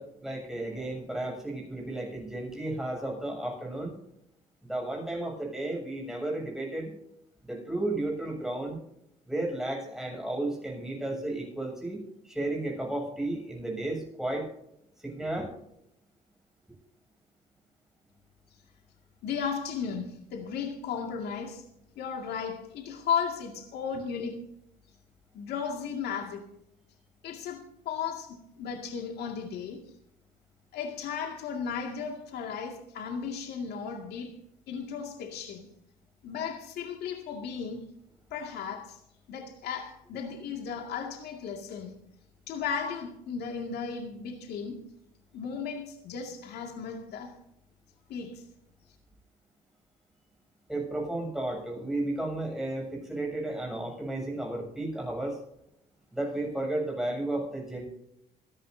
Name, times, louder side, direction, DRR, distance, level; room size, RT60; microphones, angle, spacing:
voice 1, 0.0-3.9 4.6-6.9 7.4-8.8 9.3-14.5 15.0-15.5 50.7-55.4 56.1-57.8, right 1 dB, 5° right, 7.3 m, -33 dB
voice 2, 19.2-21.6 22.0-24.4 25.3-26.5 27.2-29.8 30.7-34.4 34.7-35.7 36.2-37.8 38.3-39.0 39.3-41.9 42.5-44.8 45.3-47.4 48.1-48.4, left 6 dB, 75° left, 2.2 m, -35 dB
26.5 x 11.0 x 2.7 m
cardioid pair, 110°, 17 cm